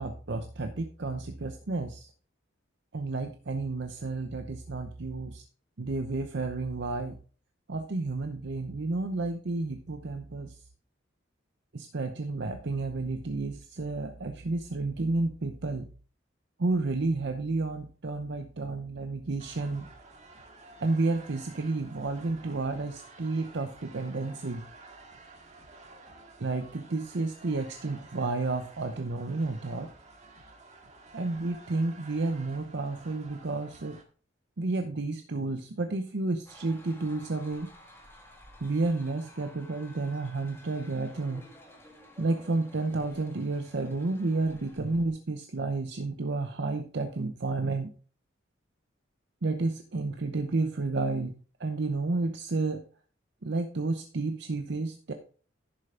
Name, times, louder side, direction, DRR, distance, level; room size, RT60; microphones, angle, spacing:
voice 1, 0.0-2.1 2.9-5.4 5.8-7.2 7.7-10.6 11.7-15.9 16.6-19.9 20.8-24.6 26.4-29.9 31.1-34.0 34.6-37.7 38.6-41.4 42.2-47.9 49.4-51.3 51.6-52.8 53.4-55.1, right 3 dB, 65° right, 6 dB, 0.7 m, -31 dB
sound 1, 19.4-34.0, right 3 dB, 40° right, 1.7 m, -52 dB
sound 2, 36.5-45.1, left 1 dB, 15° left, 1.8 m, -53 dB
11.0 x 6.7 x 3.7 m, 0.41 s
head